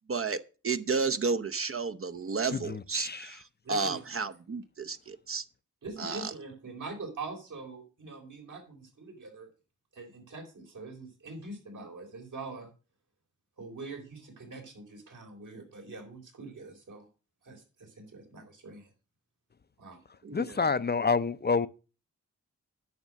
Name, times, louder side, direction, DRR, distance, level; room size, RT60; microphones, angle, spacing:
voice 1, 0.1-5.5 6.0-6.3 20.2-20.6, right 4 dB, 45° right, 0.7 m, -32 dB
voice 2, 2.5-3.3 20.3-21.7, left 4 dB, 35° left, 0.6 m, -28 dB
voice 3, 3.6-4.0 5.8-9.5 9.9-12.7 13.6-17.1 17.4-18.9 19.8-20.0 20.5-20.7, right 3 dB, 75° right, 3.9 m, -44 dB
9.5 x 6.3 x 6.2 m
cardioid pair, 55°, 31 cm